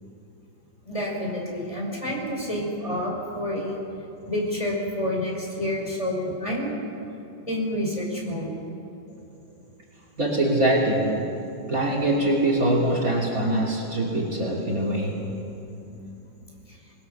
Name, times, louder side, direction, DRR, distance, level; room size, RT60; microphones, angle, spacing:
voice 1, 0.9-3.8 4.3-6.8 7.5-8.5, left 1 dB, 15° left, -3 dB, 5.4 m, -28 dB
voice 2, 10.2-11.1 11.7-15.2, right 1 dB, 45° right, -1 dB, 3.3 m, -23 dB
26.5 x 20.5 x 6.8 m, 2.9 s
omnidirectional pair, 2.1 m